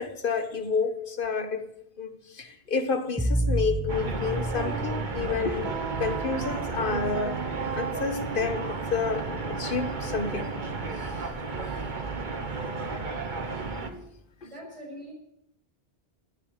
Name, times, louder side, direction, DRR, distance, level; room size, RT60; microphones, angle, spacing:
voice 1, 0.0-1.6 2.0-2.1 2.3-5.7 6.0-7.4 7.7-10.6 11.0-11.1 13.9-14.1 14.4-14.5, left 4 dB, 60° left, 1.4 m, -30 dB
sound 1, 3.2-6.3, right 1 dB, ahead, 1.2 m, -30 dB
sound 2, 3.9-13.9, right 3 dB, 50° right, 1.4 m, -33 dB
Wind instrument woodwind instrument, 4.5-11.5, right 9 dB, 90° right, 0.9 m, -39 dB
voice 2, 14.4-15.1, equal, 30° right, 6.5 m, -42 dB
16.0 x 9.8 x 6.5 m
omnidirectional pair, 1.0 m